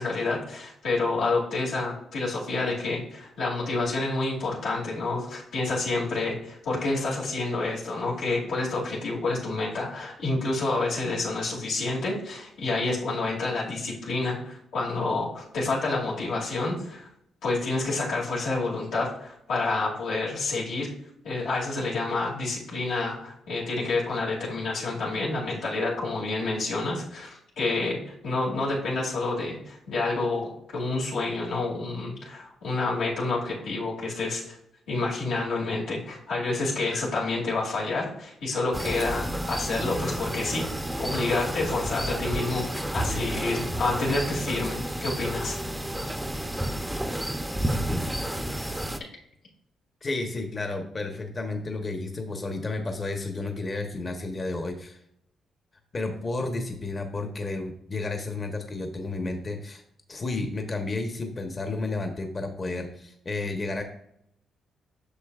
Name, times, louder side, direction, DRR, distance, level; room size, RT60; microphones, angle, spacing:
voice 1, 0.0-17.1 17.4-20.9 21.2-34.6 34.9-40.7 41.0-45.6, left 3 dB, 85° left, -6 dB, 2.5 m, -28 dB
sound 1, 38.7-49.0, right 1 dB, 5° right, 0.6 m, -31 dB
voice 2, 50.0-55.0 55.9-59.8 60.1-63.8, left 2 dB, 35° left, 4 dB, 1.0 m, -32 dB
8.3 x 6.3 x 2.4 m, 0.74 s
cardioid pair, 85°, 0 cm